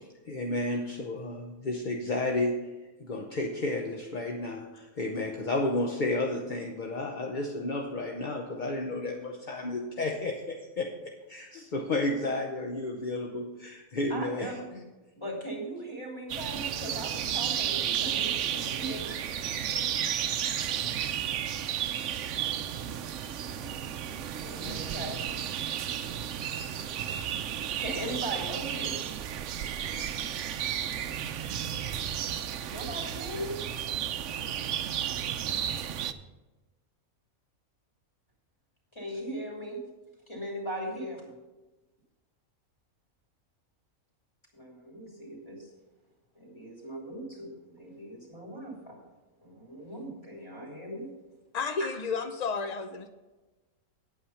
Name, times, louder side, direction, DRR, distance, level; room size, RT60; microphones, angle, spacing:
voice 1, 0.3-1.3 1.7-2.5 3.1-4.6 5.0-9.1 9.5-10.3 10.8-10.9 11.3-11.4 11.7-13.4 14.0-14.5, left 2 dB, 40° left, 2 dB, 0.9 m, -31 dB
voice 2, 14.1-14.8 15.1-19.2 24.4-25.2 27.6-29.1 32.7-33.6 38.9-39.8 40.3-41.3 44.5-45.7 46.3-49.0 49.4-51.1 51.8-51.9, right 1 dB, 20° left, -3 dB, 3.1 m, -39 dB
sound 1, 16.3-36.1, right 9 dB, 65° right, 0.9 m, -33 dB
voice 3, 51.5-53.1, left 4 dB, 55° left, 7 dB, 0.4 m, -32 dB
9.5 x 8.8 x 5.6 m, 1.1 s
omnidirectional pair, 1.5 m